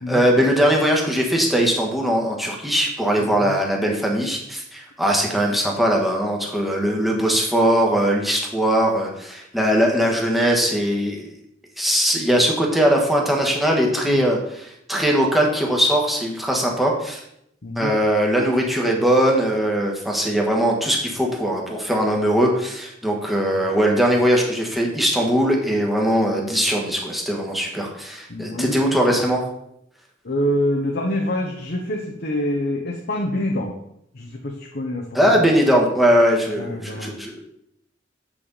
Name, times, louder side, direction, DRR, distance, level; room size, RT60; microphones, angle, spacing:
voice 1, 0.1-11.3 11.8-17.2 17.7-29.4 35.1-37.4, equal, ahead, -1 dB, 1.4 m, -20 dB
voice 2, 17.6-17.9 28.3-28.8 30.2-33.7 34.2-35.0 36.6-37.1, left 1 dB, 55° left, 1 dB, 1.0 m, -25 dB
7.7 x 6.1 x 4.1 m, 0.75 s
head